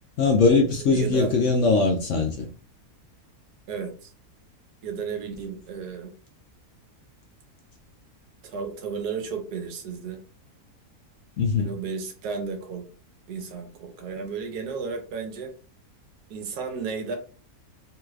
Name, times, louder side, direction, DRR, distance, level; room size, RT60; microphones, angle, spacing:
voice 1, 0.2-2.5 11.4-11.7, left 4 dB, 70° left, 0.7 m, -21 dB
voice 2, 0.9-1.3 3.7-4.1 4.8-6.1 8.4-10.2 11.6-12.8 13.3-15.5 16.3-17.2, right 5 dB, 85° right, 1.3 m, -33 dB
3.2 x 2.3 x 3.1 m
omnidirectional pair, 1.7 m